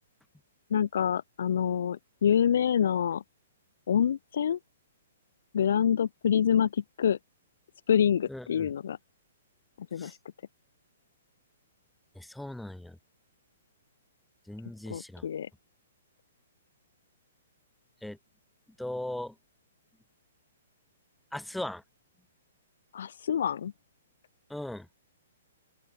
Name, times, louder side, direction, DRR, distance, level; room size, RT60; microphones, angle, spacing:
voice 1, 0.7-3.2 3.9-4.6 5.5-7.2 7.9-9.0 9.8-10.2 14.9-15.5 22.9-23.7, left 8 dB, 70° left, 0.6 m, -26 dB
voice 2, 8.3-8.7 10.0-10.2 12.1-13.0 14.5-15.2 18.0-18.2 18.8-19.3 21.3-21.8 24.5-24.9, left 1 dB, 5° left, 3.1 m, -38 dB
open air
hypercardioid pair, 135°, 0 cm